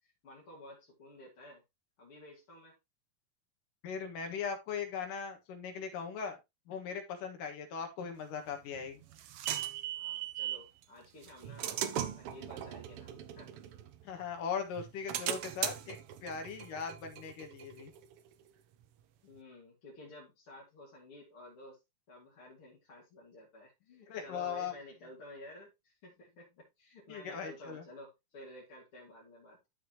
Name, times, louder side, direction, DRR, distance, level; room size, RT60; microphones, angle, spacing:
voice 1, 0.0-1.6 2.0-2.8 9.9-13.6 19.2-21.8 22.1-29.6, left 1 dB, 45° left, 3.2 m, -53 dB
voice 2, 3.8-6.4 6.7-9.0 14.0-17.9 24.1-24.7 27.1-27.8, left 6 dB, 80° left, 3.2 m, -39 dB
sound 1, 8.5-10.7 11.2-14.3 14.8-18.2, right 11 dB, 85° right, 1.2 m, -39 dB
12.0 x 5.4 x 2.9 m
omnidirectional pair, 3.7 m